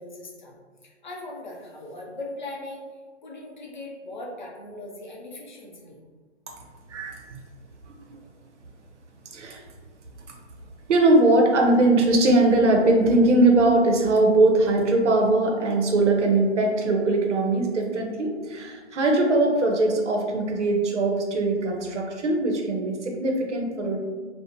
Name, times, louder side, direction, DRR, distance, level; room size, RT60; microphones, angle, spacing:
voice 1, 0.0-2.8 3.2-6.0 8.1-8.3 9.3-9.4, left 2 dB, 45° left, -2 dB, 0.5 m, -39 dB
voice 2, 6.9-7.4 7.9-8.2 9.3-9.6 10.3-10.4 10.9-24.0, right 2 dB, 80° right, 2 dB, 0.7 m, -21 dB
2.8 x 2.1 x 2.5 m, 1.5 s
hypercardioid pair, 170°, 35 cm